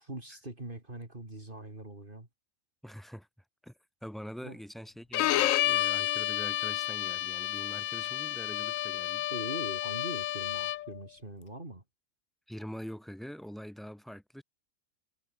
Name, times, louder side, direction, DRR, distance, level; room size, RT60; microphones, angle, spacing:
voice 1, 0.0-2.3 4.4-4.6 9.3-11.8, right 2 dB, 40° right, 4.1 m, -42 dB
voice 2, 2.8-3.3 3.6-3.7 4.0-9.3 12.5-14.4, equal, ahead, 5.0 m, -44 dB
Bowed string instrument, 5.1-11.0, left 14 dB, 80° left, 1.0 m, -30 dB
omnidirectional pair, 1.4 m